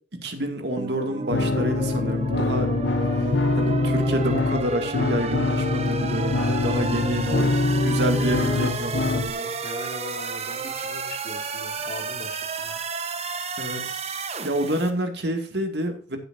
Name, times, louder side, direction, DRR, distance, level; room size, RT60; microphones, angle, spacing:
voice 1, 0.1-2.7 3.2-9.5 13.6-14.0 14.4-16.2, right 1 dB, 65° right, 5 dB, 2.4 m, -28 dB
sound 1, 0.8-14.9, right 4 dB, 35° right, 1.1 m, -32 dB
sound 2, 1.3-9.3, left 3 dB, 85° left, 0.8 m, -24 dB
voice 2, 7.2-7.6 8.1-8.8 9.6-12.8, left 1 dB, 50° left, 4 dB, 2.7 m, -39 dB
15.5 x 8.2 x 2.7 m, 0.41 s
head